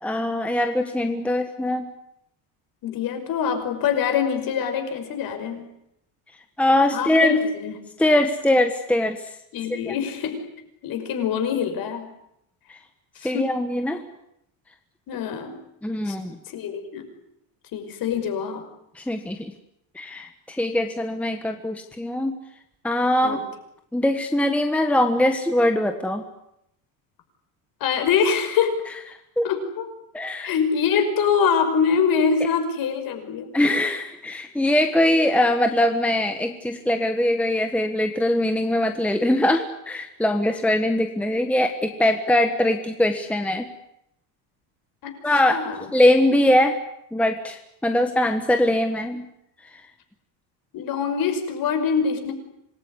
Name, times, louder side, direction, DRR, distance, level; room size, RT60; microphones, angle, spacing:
voice 1, 0.0-1.9 6.6-7.3 8.0-9.2 9.8-9.9 13.2-14.0 15.8-16.4 18.9-19.5 19.9-22.4 22.8-23.4 23.9-26.2 29.4-29.5 30.1-30.5 33.5-43.7 45.2-45.6 45.9-46.8 47.1-49.2, left 1 dB, 5° left, 6 dB, 1.3 m, -22 dB
voice 2, 2.8-5.7 6.9-7.8 9.5-10.4 10.8-12.1 13.2-13.5 15.1-15.6 16.1-16.2 16.5-17.0 17.7-18.7 23.2-23.4 27.8-28.8 29.4-29.9 30.4-33.5 45.0-45.2 45.5-45.9 50.7-52.3, left 6 dB, 45° left, 6 dB, 5.8 m, -24 dB
26.5 x 20.5 x 9.8 m, 0.79 s
cardioid pair, 165°, 49 cm